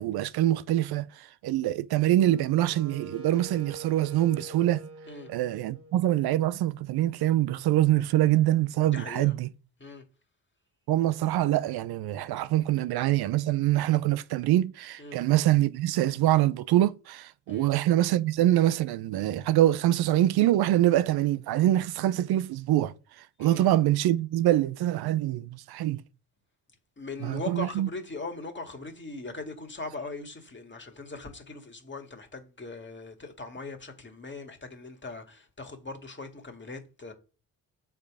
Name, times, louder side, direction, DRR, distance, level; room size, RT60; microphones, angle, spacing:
voice 1, 0.0-4.8 5.3-9.5 10.9-22.9 23.4-26.0 27.2-27.9, right 14 dB, 70° right, 0.6 m, -24 dB
Wind instrument woodwind instrument, 2.2-6.4, right 4 dB, 35° right, 1.3 m, -45 dB
voice 2, 8.9-9.3 9.8-10.0 15.0-15.2 17.5-17.7 23.4-23.7 27.0-37.1, left 3 dB, 30° left, 2.0 m, -40 dB
6.4 x 3.7 x 4.9 m
supercardioid pair, 50°, 39 cm